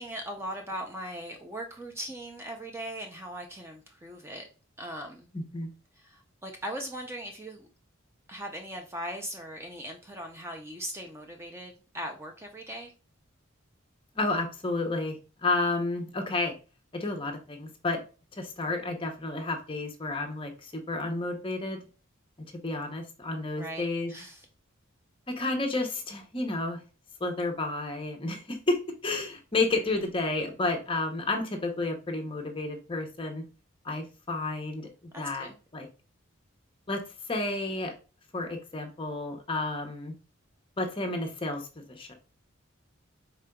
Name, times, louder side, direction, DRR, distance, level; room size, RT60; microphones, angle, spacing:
voice 1, 0.0-4.5 4.8-5.3 5.9-7.7 8.3-12.9 23.6-24.5 35.1-35.6, right 1 dB, 10° right, 3 dB, 0.4 m, -39 dB
voice 2, 5.3-5.7 14.2-15.2 15.4-16.6 16.9-18.0 18.4-21.8 22.6-24.1 25.3-26.8 27.2-33.4 33.8-34.9 35.2-35.9 36.9-37.0 37.3-37.9 38.3-40.1 40.8-42.1, left 2 dB, 25° left, 4 dB, 0.7 m, -31 dB
4.9 x 3.7 x 2.2 m, 0.33 s
head